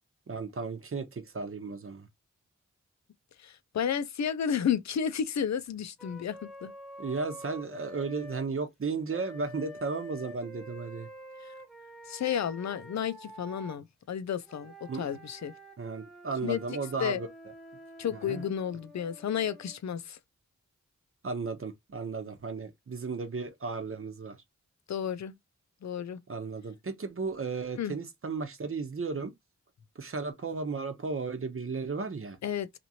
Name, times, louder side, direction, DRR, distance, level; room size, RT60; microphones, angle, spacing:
voice 1, 0.3-2.1 7.0-11.1 14.9-15.0 15.8-17.3 18.1-18.4 21.2-24.4 26.3-29.3 30.0-32.4, right 4 dB, 45° right, 0.8 m, -34 dB
voice 2, 3.4-6.7 12.1-15.5 16.4-16.6 17.0-17.2 18.0-20.2 24.9-25.3 25.8-26.2 27.8-28.0 32.4-32.8, left 8 dB, 65° left, 0.5 m, -32 dB
Wind instrument woodwind instrument, 6.0-8.5 9.1-13.8 14.4-19.8, equal, ahead, 0.8 m, -48 dB
2.8 x 2.5 x 2.8 m
wide cardioid pair, 60°, 29 cm